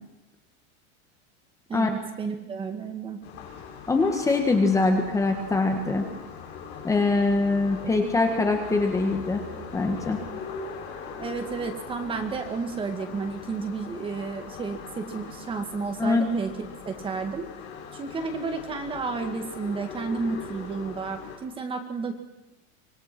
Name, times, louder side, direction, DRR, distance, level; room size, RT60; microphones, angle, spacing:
voice 1, 1.7-3.2 11.2-17.5 17.9-22.2, right 4 dB, 15° right, 6 dB, 1.9 m, -32 dB
sound 1, 3.2-21.4, left 5 dB, 35° left, 6.2 m, -40 dB
voice 2, 3.9-6.1 6.8-9.4 9.7-10.2 16.0-16.3, left 3 dB, 10° left, 4 dB, 1.6 m, -23 dB
25.5 x 19.5 x 6.1 m, 0.97 s
supercardioid pair, 170°, 33 cm